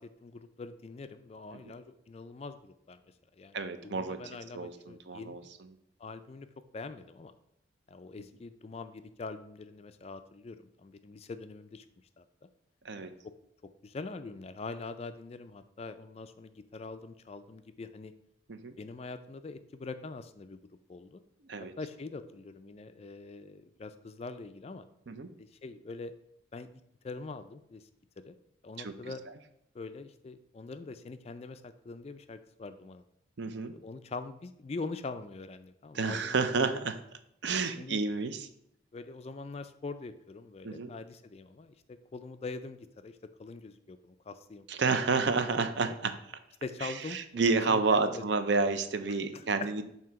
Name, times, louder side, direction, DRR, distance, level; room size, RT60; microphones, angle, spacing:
voice 1, 0.0-3.0 3.3-5.5 6.0-6.5 6.7-7.3 7.9-11.9 12.2-12.3 13.0-13.1 13.8-18.1 18.8-20.6 20.9-21.2 21.6-24.8 25.4-26.1 26.5-26.7 27.0-27.9 28.2-28.3 28.6-29.2 29.7-33.0 33.7-36.4 37.8-38.0 38.9-44.9 45.4-45.9 46.6-48.2 49.1-49.7, left 3 dB, 30° left, 10 dB, 0.3 m, -43 dB
voice 2, 3.5-4.2 4.5-5.4 12.8-13.1 18.5-18.7 21.5-21.7 25.1-25.3 28.8-28.9 33.4-33.7 35.9-37.0 37.4-38.5 40.6-40.9 44.7-46.2 46.8-49.8, right 4 dB, 60° right, 10 dB, 0.5 m, -30 dB
7.5 x 2.8 x 5.7 m, 0.76 s
head